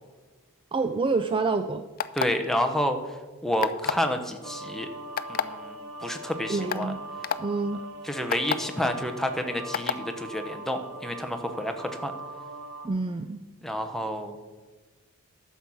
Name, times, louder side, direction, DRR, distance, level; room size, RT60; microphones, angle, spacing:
voice 1, 0.7-1.8 6.5-7.0 7.4-7.8 12.8-13.4, right 3 dB, 25° right, 9 dB, 0.4 m, -27 dB
sound 1, 2.0-2.5 3.6-4.1 5.2-5.4 6.2-6.3 6.7-6.8 7.2-7.4 8.3-8.6 9.7-10.0, left 8 dB, 40° left, 0.4 m, -27 dB
voice 2, 2.1-3.0 3.4-4.9 5.3-6.9 8.0-12.1 13.6-14.3, equal, ahead, 5 dB, 0.9 m, -29 dB
sound 2, 4.4-12.9, right 2 dB, 75° right, 1.3 m, -41 dB
11.5 x 7.2 x 6.2 m, 1.3 s
head